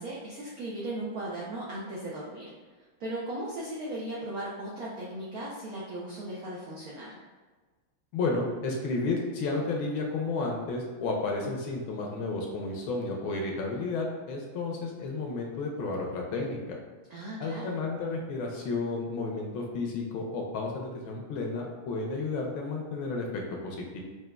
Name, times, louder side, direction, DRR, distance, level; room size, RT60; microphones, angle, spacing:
voice 1, 0.0-2.5 3.0-7.2 17.1-17.8, right 1 dB, 80° right, -5 dB, 0.8 m, -37 dB
voice 2, 8.1-16.8 17.4-24.0, left 3 dB, 75° left, 0 dB, 1.4 m, -32 dB
6.1 x 2.4 x 2.2 m, 1.3 s
omnidirectional pair, 2.3 m